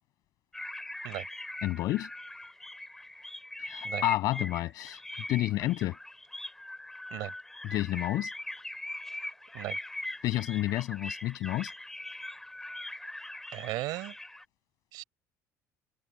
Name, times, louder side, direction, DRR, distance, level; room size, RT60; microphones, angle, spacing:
sound 1, 0.5-14.5, left 1 dB, 5° left, 6.5 m, -41 dB
voice 1, 1.6-2.1 3.6-5.0 5.3-6.0 7.6-8.3 10.2-11.7, left 16 dB, 60° left, 7.8 m, -30 dB
voice 2, 13.5-14.1 14.9-15.0, right 18 dB, 70° right, 4.7 m, -36 dB
cardioid pair, 155°, 7 cm